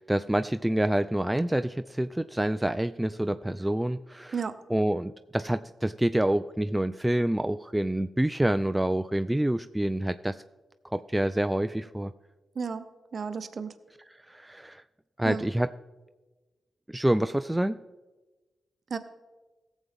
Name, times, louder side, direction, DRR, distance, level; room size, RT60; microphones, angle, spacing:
voice 1, 0.0-4.3 4.7-10.4 10.9-12.1 14.3-14.8 15.2-15.7 16.9-17.8, right 1 dB, 10° right, 11 dB, 0.3 m, -27 dB
voice 2, 13.1-13.7 15.2-15.5 18.9-19.0, right 5 dB, 60° right, 10 dB, 0.7 m, -32 dB
17.0 x 7.2 x 3.6 m, 1.2 s
supercardioid pair, 40°, 0 cm